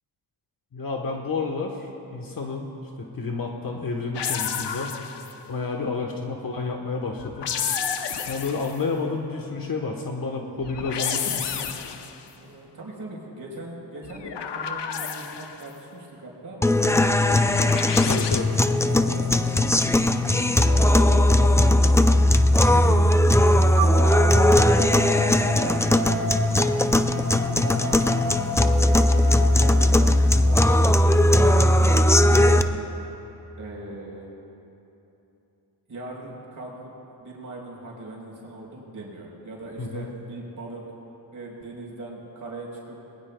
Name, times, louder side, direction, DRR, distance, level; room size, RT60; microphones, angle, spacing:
voice 1, 0.7-2.7 3.0-5.0 5.5-7.5 8.3-11.7 18.0-18.6 27.5-27.9 39.8-40.1, left 4 dB, 55° left, 1 dB, 1.3 m, -30 dB
sound 1, 4.1-5.4 7.2-8.8 10.6-12.2 14.0-15.7 17.5-18.4, left 7 dB, 75° left, 0.9 m, -30 dB
voice 2, 12.4-17.7 18.8-20.0 20.7-21.8 22.6-24.0 24.4-24.6 24.9-27.1 27.5-30.1 30.4-32.8 33.6-34.3 35.9-36.9 37.2-40.8 41.3-43.0, right 2 dB, 50° right, -3 dB, 4.3 m, -39 dB
sound 2, 16.6-32.6, left 1 dB, 5° left, 0.4 m, -19 dB
sound 3, 20.6-22.5 23.7-29.8, right 1 dB, 65° right, 3.3 m, -33 dB
25.5 x 20.5 x 2.3 m, 2.9 s
wide cardioid pair, 110°, 42 cm